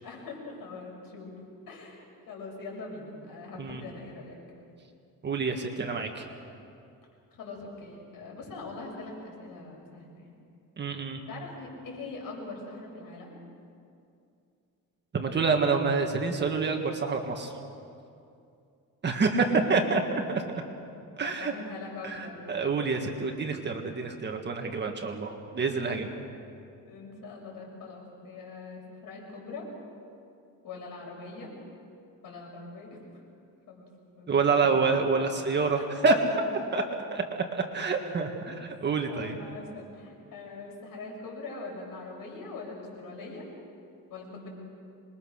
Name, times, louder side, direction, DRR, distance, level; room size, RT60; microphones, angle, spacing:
voice 1, 0.0-4.4 7.3-10.3 11.3-13.4 21.2-22.7 23.2-23.3 26.9-29.7 30.6-31.5 32.2-33.3 33.7-33.9 34.2-34.9 35.7-36.9 39.1-43.5 44.1-44.5, left 3 dB, 70° left, -1 dB, 6.9 m, -42 dB
voice 2, 5.2-6.2 10.8-11.2 15.1-17.5 19.0-20.4 21.2-21.5 22.0-26.1 34.3-36.2 36.7-36.8 37.1-39.4, right 4 dB, 30° right, 3 dB, 1.8 m, -27 dB
26.0 x 22.0 x 6.5 m, 2.5 s
cardioid pair, 155°, 34 cm